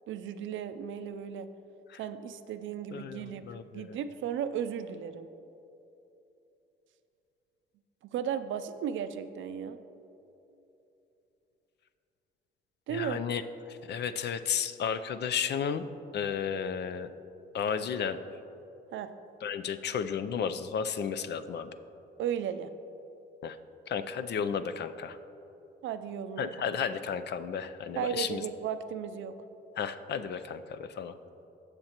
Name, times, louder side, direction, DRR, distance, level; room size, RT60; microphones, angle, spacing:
voice 1, 0.1-1.5 2.0-3.4 3.7-5.3 8.0-9.8 12.9-13.2 18.9-19.1 22.2-22.7 25.8-26.5 28.0-29.3, right 8 dB, 75° right, 11 dB, 0.5 m, -35 dB
voice 2, 2.9-4.0 12.9-13.4 13.7-15.9 16.1-17.1 17.5-18.2 19.4-21.7 23.4-23.6 23.9-25.2 26.4-28.4 29.8-31.1, left 7 dB, 60° left, 11 dB, 0.5 m, -33 dB
16.5 x 6.6 x 3.0 m, 2.9 s
cardioid pair, 90°, 20 cm